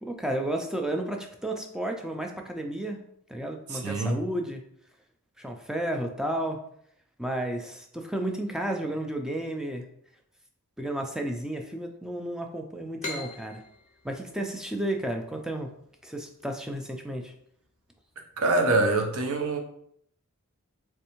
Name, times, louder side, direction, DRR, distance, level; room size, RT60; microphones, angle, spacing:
voice 1, 0.0-3.0 3.3-4.6 5.4-6.6 7.2-9.9 10.8-13.6 14.0-15.7 16.0-17.3, right 1 dB, 5° right, 3 dB, 0.3 m, -32 dB
voice 2, 3.7-4.2 18.4-19.6, right 2 dB, 70° right, 3 dB, 0.7 m, -25 dB
sound 1, 13.0-16.4, left 2 dB, 35° left, 0.6 m, -41 dB
3.4 x 3.2 x 3.0 m, 0.68 s
head